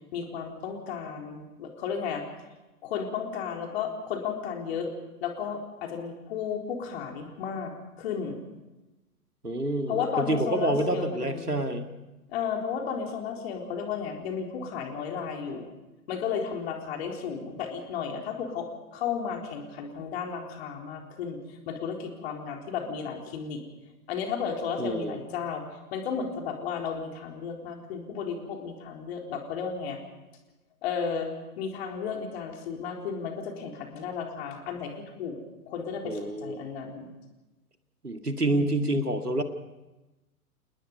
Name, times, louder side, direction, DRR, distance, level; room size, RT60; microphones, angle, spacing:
voice 1, 0.1-2.2 2.8-4.9 5.2-7.7 8.0-8.4 9.9-11.6 12.3-15.7 16.1-21.4 21.7-23.6 24.1-25.6 25.9-30.0 30.8-34.9 35.2-35.4 35.7-37.1 38.5-39.0, left 6 dB, 45° left, 2 dB, 4.1 m, -33 dB
voice 2, 9.4-11.9 24.8-25.2 36.0-36.6 38.0-39.4, right 1 dB, 90° right, 7 dB, 2.1 m, -28 dB
29.0 x 20.0 x 5.4 m, 1.1 s
figure-of-eight pair, 110°, 45 cm